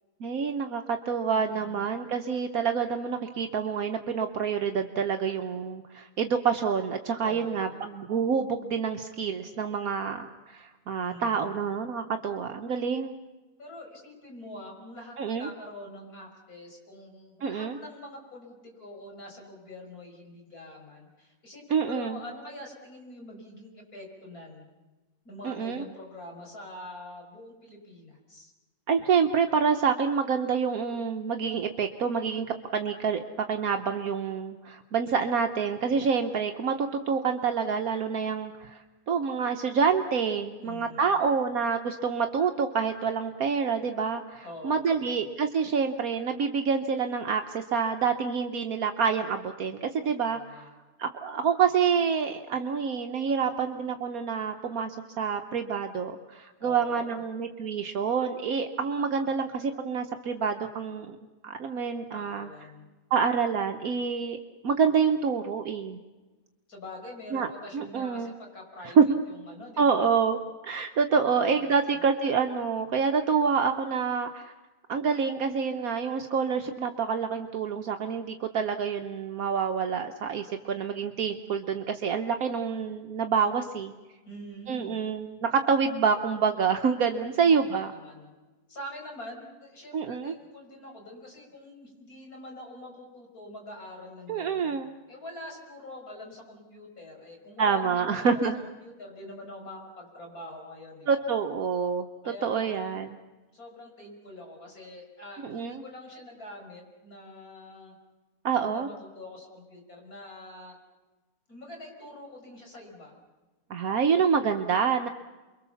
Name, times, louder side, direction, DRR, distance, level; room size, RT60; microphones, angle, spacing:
voice 1, 0.2-13.1 15.2-15.5 17.4-17.8 21.7-22.2 25.4-25.8 28.9-32.5 32.7-50.6 51.0-61.2 61.4-62.5 63.1-64.4 64.6-66.0 67.3-67.5 67.7-68.3 69.0-69.1 69.8-70.4 70.6-74.5 74.9-83.9 84.7-87.9 89.9-90.3 94.3-94.9 97.6-98.6 101.1-102.1 102.4-103.2 105.4-105.8 108.4-108.9 113.7-115.1, right 6 dB, 70° right, 6 dB, 1.4 m, -27 dB
voice 2, 1.3-1.8 7.2-7.9 11.0-11.6 13.6-24.7 25.2-28.5 40.6-41.1 44.4-45.2 50.3-50.8 56.6-57.2 62.1-62.9 66.7-69.0 69.3-70.1 71.4-72.0 84.2-85.0 87.4-88.3 88.7-94.7 95.1-101.2 102.2-103.0 103.5-107.9 108.6-110.8 111.5-113.2, left 1 dB, 70° left, 1 dB, 6.4 m, -45 dB
29.0 x 23.0 x 7.1 m, 1.2 s
omnidirectional pair, 1.6 m